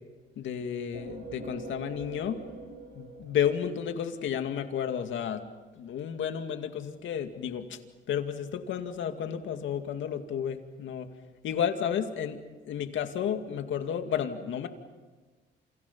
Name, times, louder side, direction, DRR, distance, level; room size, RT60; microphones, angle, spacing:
voice 1, 0.4-2.4 3.0-5.4 5.7-7.8 8.1-11.1 11.4-12.4 12.7-14.7, left 8 dB, 75° left, 6 dB, 2.4 m, -32 dB
sound 1, 0.9-4.5, right 3 dB, 60° right, 6.7 m, -44 dB
29.0 x 29.0 x 5.6 m, 1.3 s
cardioid pair, 90°, 20 cm